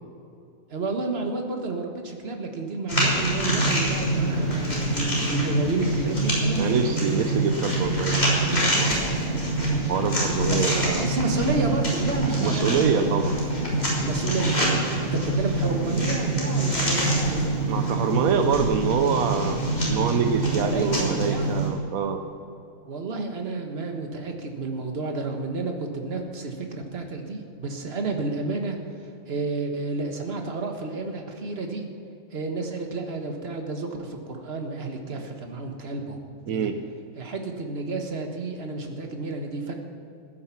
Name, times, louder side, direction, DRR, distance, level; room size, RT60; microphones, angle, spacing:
voice 1, 0.7-6.9 10.5-13.2 14.0-17.5 20.4-21.5 22.8-31.8 32.3-36.2 36.5-36.7 37.1-39.7, right 3 dB, 50° right, 3 dB, 1.6 m, -31 dB
sound 1, 2.9-21.7, right 1 dB, 30° left, 3.8 m, -25 dB
voice 2, 6.6-9.0 9.9-11.1 12.4-13.4 17.7-22.2 36.5-36.8, right 6 dB, 85° right, 7 dB, 1.2 m, -26 dB
15.5 x 9.5 x 5.9 m, 2.7 s
omnidirectional pair, 1.4 m